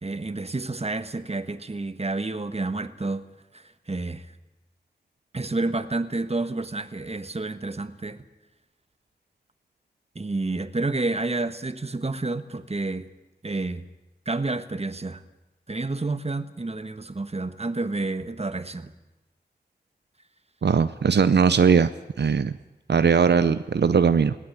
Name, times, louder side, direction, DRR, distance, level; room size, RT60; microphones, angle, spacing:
voice 1, 0.0-3.2 3.5-4.3 5.3-8.2 10.1-13.1 13.4-13.9 14.2-15.2 15.7-18.9, right 2 dB, 35° right, 11 dB, 1.3 m, -29 dB
voice 2, 20.6-21.9 22.2-22.5 22.9-24.3, right 6 dB, 85° right, 13 dB, 0.6 m, -19 dB
19.0 x 16.5 x 9.6 m, 1.0 s
wide cardioid pair, 65°, 17 cm